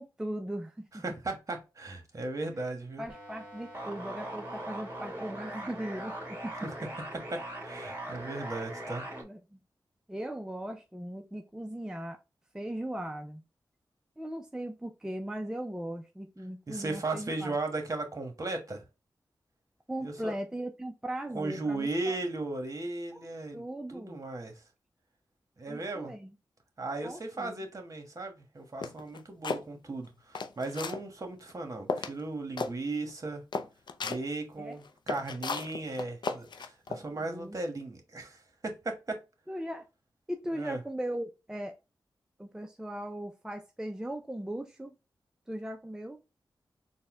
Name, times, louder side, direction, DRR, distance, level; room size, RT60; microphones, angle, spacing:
voice 1, 0.0-1.0 3.0-6.9 8.5-8.6 9.1-9.6 10.1-12.2 12.5-13.4 14.2-17.6 19.9-22.2 23.1-23.2 23.5-24.2 25.7-26.3 27.0-27.7 34.6-34.8 37.1-37.6 39.5-39.9 40.3-41.8 42.4-45.0 45.5-46.2, right 1 dB, 10° right, 0.5 m, -38 dB
voice 2, 1.0-3.0 7.3-9.0 16.7-18.8 20.0-20.3 21.3-23.6 23.9-24.5 25.6-26.1 26.8-33.4 34.0-39.2 40.5-40.8, right 2 dB, 45° right, 1.3 m, -36 dB
sound 1, 3.1-9.2, right 1 dB, 25° right, 1.7 m, -40 dB
sound 2, 28.8-29.6 30.1-31.0 31.5-31.6 31.9-32.2 32.6-32.7 33.1-33.2 33.5-34.2 34.8-37.0, left 4 dB, 70° left, 0.5 m, -34 dB
4.1 x 2.2 x 3.6 m
cardioid pair, 60°, 8 cm